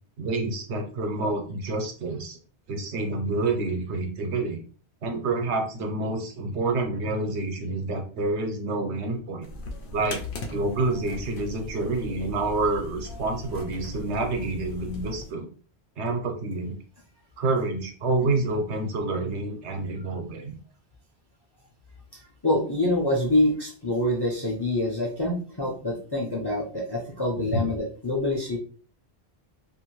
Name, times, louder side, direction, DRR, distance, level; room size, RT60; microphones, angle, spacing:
voice 1, 0.2-2.4 2.7-4.6 5.0-9.5 9.9-10.2 10.5-15.5 16.0-16.7 17.4-20.5 27.4-27.7, right 2 dB, 80° right, 3 dB, 1.1 m, -28 dB
sound 1, 9.4-15.3, left 3 dB, 75° left, 0.9 m, -38 dB
voice 2, 22.1-28.6, left 1 dB, 30° left, -3 dB, 0.5 m, -26 dB
2.6 x 2.5 x 3.0 m, 0.40 s
omnidirectional pair, 1.1 m